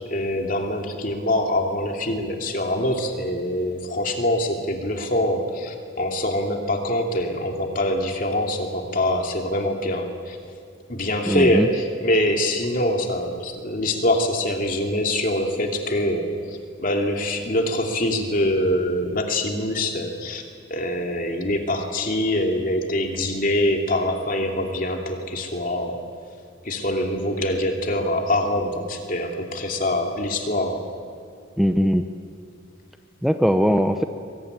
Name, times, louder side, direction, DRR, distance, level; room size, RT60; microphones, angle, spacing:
voice 1, 0.1-10.4 10.9-20.4 20.7-26.0 26.6-30.9, left 1 dB, 45° left, 3 dB, 2.8 m, -24 dB
voice 2, 11.3-11.7 31.6-32.1 33.2-34.0, equal, ahead, 6 dB, 0.7 m, -20 dB
23.5 x 23.0 x 9.8 m, 2.4 s
head